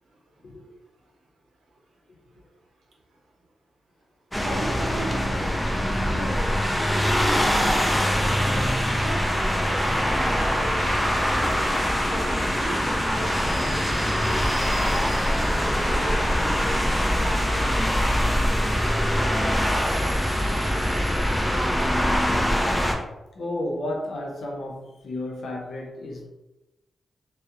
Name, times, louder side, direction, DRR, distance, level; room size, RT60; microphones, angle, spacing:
sound 1, 4.3-22.9, equal, 5° left, 0.4 m, -23 dB
voice 1, 4.4-5.6 6.2-6.5 7.2-7.5 8.5-11.1 12.1-14.6 14.8-14.9 15.8-16.8 17.1-19.8 20.2-20.7 21.5-22.0, right 1 dB, 85° right, -1 dB, 0.6 m, -38 dB
voice 2, 23.3-26.3, left 1 dB, 75° left, -1 dB, 0.6 m, -32 dB
2.8 x 2.0 x 2.3 m, 0.97 s
cardioid pair, 85°, 0 cm